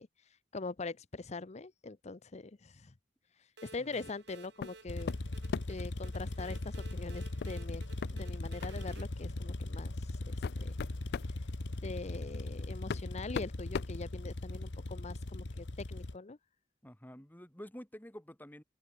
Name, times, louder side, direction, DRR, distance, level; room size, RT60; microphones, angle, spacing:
voice 1, 0.0-2.9 3.4-5.1 5.7-7.8 8.1-10.7 11.2-11.5 11.8-16.4, left 3 dB, 40° left, 0.7 m, -43 dB
sound 1, 3.6-9.0, right 3 dB, 70° right, 3.8 m, -55 dB
sound 2, 4.6-4.8 5.1-5.9 7.4-7.6 8.0-8.1 8.6-8.8 9.6-9.7 10.2-11.4 12.4-12.5 12.9-14.6, left 6 dB, 60° left, 0.3 m, -39 dB
sound 3, 4.9-16.2, left 2 dB, 80° left, 1.2 m, -39 dB
voice 2, 16.8-18.6, equal, 10° left, 2.8 m, -49 dB
head